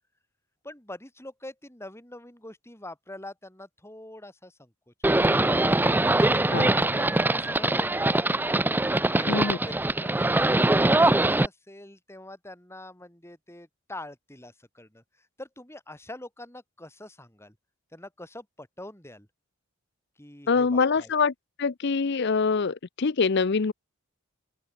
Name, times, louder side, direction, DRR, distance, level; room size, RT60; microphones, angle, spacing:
voice 1, 0.6-4.7 6.0-8.5 8.9-15.0 15.4-17.5 17.9-19.3 20.2-21.1, left 1 dB, 10° left, 4.8 m, -44 dB
Livestock farm animals working animals, 5.0-11.5, right 2 dB, 10° right, 0.5 m, -22 dB
voice 2, 9.3-9.6 20.5-21.3 21.6-23.7, left 5 dB, 55° left, 0.6 m, -24 dB
open air
head